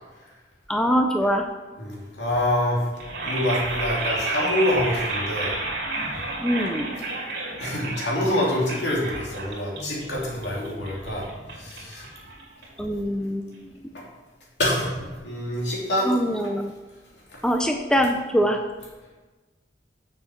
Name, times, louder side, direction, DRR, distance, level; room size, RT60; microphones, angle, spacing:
voice 1, 0.7-1.5 6.4-7.0 12.8-13.4 16.0-16.7 17.4-18.6, equal, 5° left, 4 dB, 0.5 m, -23 dB
voice 2, 1.8-2.8 3.2-5.5 7.6-11.2 11.6-12.0 14.6-16.1, left 1 dB, 75° left, -4 dB, 2.9 m, -26 dB
sound 1, 2.9-13.0, right 2 dB, 70° right, 2.4 m, -32 dB
6.8 x 6.8 x 5.8 m, 1.2 s
head